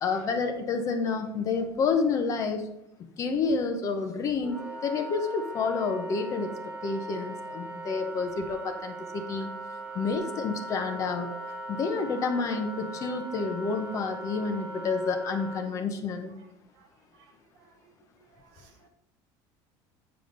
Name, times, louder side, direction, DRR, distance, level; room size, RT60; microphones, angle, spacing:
voice 1, 0.0-2.7 3.2-6.6 6.8-9.5 9.9-11.3 11.7-16.3, left 4 dB, 35° left, 6 dB, 0.9 m, -29 dB
Wind instrument woodwind instrument, 4.4-15.6, right 2 dB, 10° right, 1.6 m, -39 dB
voice 2, 17.6-17.9 18.3-18.9, right 5 dB, 65° right, 3 dB, 1.6 m, -60 dB
9.1 x 5.3 x 3.9 m, 0.81 s
cardioid pair, 155°, 10 cm